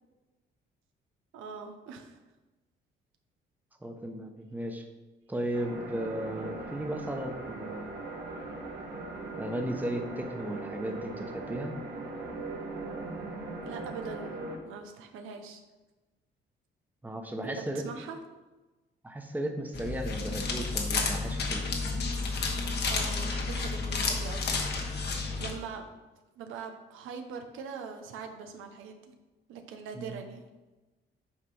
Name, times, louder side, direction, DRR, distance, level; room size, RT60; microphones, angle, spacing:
voice 1, 1.3-2.2 13.6-14.4 14.6-15.6 17.4-18.2 22.9-24.7 25.2-25.9 26.4-29.1 29.5-30.5, right 5 dB, 90° right, 5 dB, 0.9 m, -42 dB
voice 2, 3.8-4.9 5.3-8.1 9.4-11.7 17.0-17.8 19.0-21.7 29.9-30.2, right 1 dB, 10° right, 4 dB, 1.0 m, -35 dB
sound 1, 5.5-14.6, right 2 dB, 60° right, 1.4 m, -39 dB
sound 2, 19.7-25.5, left 4 dB, 55° left, 1.2 m, -31 dB
8.7 x 3.3 x 5.4 m, 1.1 s
cardioid pair, 90°, 20 cm